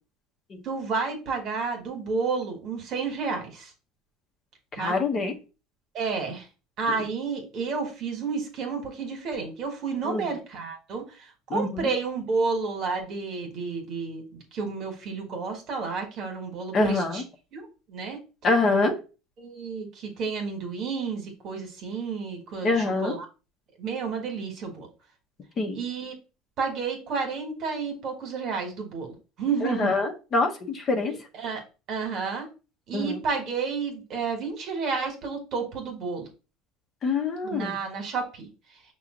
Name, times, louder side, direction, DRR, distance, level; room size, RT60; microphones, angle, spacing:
voice 1, 0.6-3.7 4.7-5.0 5.9-6.5 6.8-17.2 17.5-18.2 19.4-23.2 23.8-24.9 25.7-26.1 26.6-29.9 31.0-31.6 31.9-32.5 32.9-36.3 37.4-38.5, right 4 dB, 50° right, 3 dB, 1.5 m, -31 dB
voice 2, 4.8-5.4 10.0-10.3 11.5-11.9 16.7-17.2 18.4-18.9 22.6-23.1 25.6-25.8 29.6-31.1 32.9-33.2 37.0-37.8, left 3 dB, 35° left, 4 dB, 1.0 m, -25 dB
5.7 x 2.4 x 3.7 m, 0.32 s
supercardioid pair, 125°, 0 cm